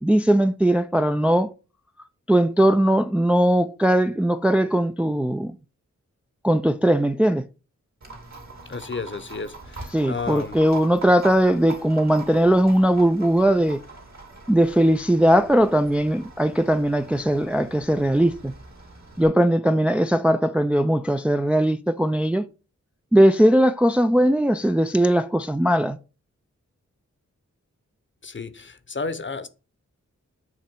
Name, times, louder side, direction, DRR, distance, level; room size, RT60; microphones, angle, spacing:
voice 1, 0.0-1.5 2.3-5.6 6.4-7.5 9.9-13.8 14.5-18.5 19.2-22.5 23.1-26.0, right 1 dB, 5° right, 0.4 m, -19 dB
Livestock farm animals working animals, 8.0-19.3, right 3 dB, 60° right, 2.2 m, -42 dB
voice 2, 8.7-10.6 28.2-29.5, left 4 dB, 40° left, 0.8 m, -32 dB
7.4 x 3.0 x 4.5 m
cardioid pair, 45°, 31 cm